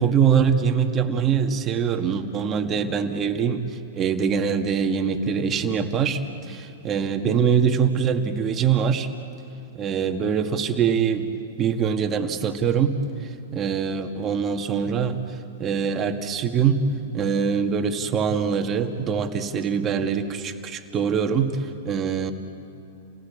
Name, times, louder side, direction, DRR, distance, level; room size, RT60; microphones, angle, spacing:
voice 1, 0.0-3.6 3.9-9.1 9.7-11.3 11.6-13.0 13.5-15.2 15.6-16.8 17.1-22.3, right 7 dB, 30° right, 6 dB, 1.8 m, -23 dB
30.0 x 18.0 x 8.6 m, 2.6 s
hypercardioid pair, 110°, 0 cm